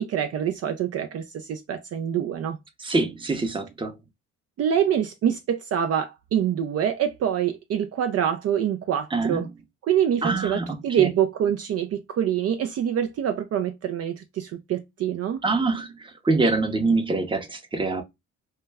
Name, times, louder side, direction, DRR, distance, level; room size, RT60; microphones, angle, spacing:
voice 1, 0.0-2.6 4.6-9.5 9.8-15.4, right 9 dB, 55° right, 0.4 m, -25 dB
voice 2, 2.8-4.0 9.1-9.5 10.2-11.1 15.4-18.0, right 3 dB, 15° right, 0.7 m, -25 dB
2.2 x 2.1 x 3.3 m
cardioid pair, 90°, 30 cm